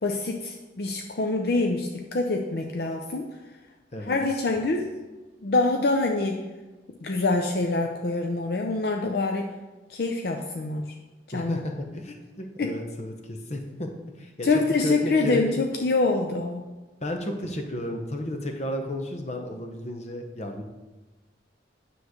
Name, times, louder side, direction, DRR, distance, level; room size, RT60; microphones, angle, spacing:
voice 1, 0.0-3.3 4.0-4.9 5.4-6.4 7.0-9.5 9.9-10.9 11.3-11.6 12.6-12.7 14.4-16.6, left 3 dB, 60° left, 2 dB, 0.5 m, -25 dB
voice 2, 3.9-4.5 11.3-13.9 14.2-14.5 14.8-15.6 17.0-20.6, left 1 dB, 35° left, 4 dB, 0.8 m, -33 dB
9.5 x 3.2 x 6.4 m, 1.2 s
head